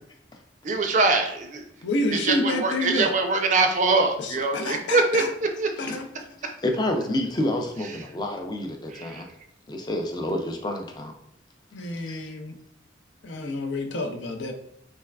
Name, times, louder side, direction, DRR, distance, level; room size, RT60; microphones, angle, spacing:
voice 1, 0.6-1.6 2.1-5.7 8.9-9.2, right 3 dB, 40° right, 5 dB, 0.4 m, -23 dB
voice 2, 1.8-3.1 4.2-5.3 5.8-6.1 11.7-12.6 13.2-14.5, left 2 dB, 80° left, 4 dB, 0.5 m, -28 dB
voice 3, 6.6-9.3 9.7-11.1 12.1-12.2, left 1 dB, 25° left, 3 dB, 0.4 m, -29 dB
3.5 x 3.2 x 2.2 m, 0.76 s
head